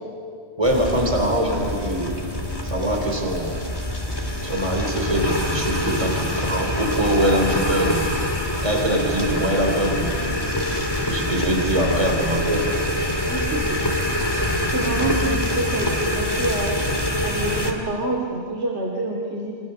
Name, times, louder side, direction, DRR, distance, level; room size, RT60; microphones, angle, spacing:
sound 1, 0.6-17.7, left 1 dB, 20° left, 2.7 m, -25 dB
voice 1, 0.6-2.2 2.6-3.6 4.4-8.2 8.6-10.4 11.0-12.7 15.0-15.1, right 1 dB, 30° right, 2 dB, 3.1 m, -23 dB
voice 2, 13.2-13.8 14.7-16.7 17.2-19.5, right 2 dB, 85° right, 0 dB, 2.9 m, -27 dB
28.0 x 26.5 x 6.8 m, 2.3 s
omnidirectional pair, 1.1 m